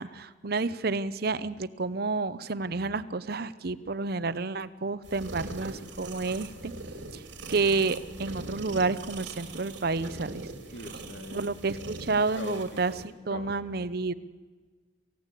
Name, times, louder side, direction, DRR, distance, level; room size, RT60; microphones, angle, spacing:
voice 1, 0.0-6.7 7.1-7.2 7.5-10.5 11.3-12.9 13.3-14.1, right 3 dB, 55° right, 15 dB, 0.8 m, -30 dB
sound 1, 5.0-13.0, right 2 dB, 70° right, 3.2 m, -41 dB
voice 2, 10.7-11.5 12.3-12.9 13.3-13.5, left 1 dB, 65° left, 8 dB, 2.0 m, -41 dB
28.0 x 16.0 x 8.3 m, 1.4 s
head